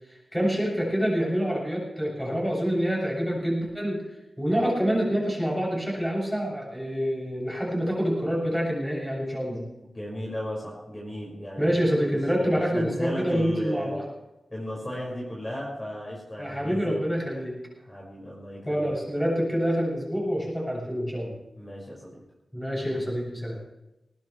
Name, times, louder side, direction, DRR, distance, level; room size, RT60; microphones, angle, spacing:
voice 1, 0.1-4.0 4.4-9.6 11.6-14.0 16.4-17.6 18.7-21.3 22.5-23.6, equal, ahead, -4 dB, 7.8 m, -27 dB
voice 2, 9.9-11.8 12.3-13.9 14.5-17.1 17.8-18.8 21.6-22.1, equal, 20° left, -5 dB, 5.9 m, -35 dB
21.0 x 19.5 x 3.4 m, 0.96 s
wide cardioid pair, 105°, 0 cm